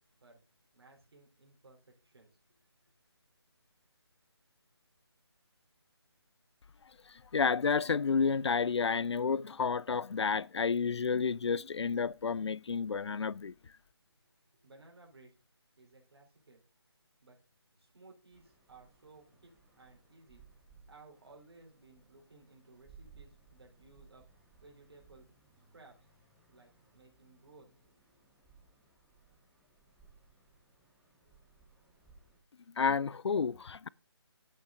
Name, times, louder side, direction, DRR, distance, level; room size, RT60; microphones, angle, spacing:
voice 1, 0.7-2.6 14.2-14.3 14.6-15.3 15.8-16.6 17.2-17.4 17.8-20.4 20.9-24.2 24.6-25.4 25.7-25.9 26.5-27.9, right 3 dB, 65° right, 3.7 m, -59 dB
voice 2, 7.3-13.5 32.8-33.9, left 5 dB, 80° left, 0.4 m, -30 dB
sound 1, 18.3-32.4, right 4 dB, 5° right, 1.0 m, -63 dB
9.0 x 8.5 x 3.8 m
figure-of-eight pair, 170°, 14 cm